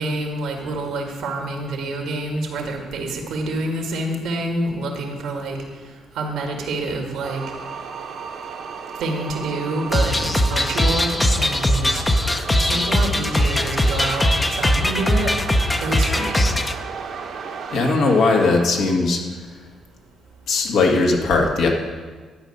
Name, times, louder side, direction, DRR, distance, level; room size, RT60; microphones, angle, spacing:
voice 1, 0.0-5.6 6.2-7.4 9.0-12.0 12.6-14.3 14.5-15.3 15.8-16.5, right 2 dB, 85° right, 2 dB, 2.2 m, -27 dB
sound 1, 7.2-18.7, right 5 dB, 65° right, 1.4 m, -34 dB
sound 2, 9.9-16.7, left 1 dB, 20° left, 0.8 m, -20 dB
voice 2, 17.7-19.2 20.5-21.7, left 3 dB, 75° left, 0 dB, 1.9 m, -18 dB
12.0 x 5.5 x 8.9 m, 1.5 s
cardioid pair, 90°, 0 cm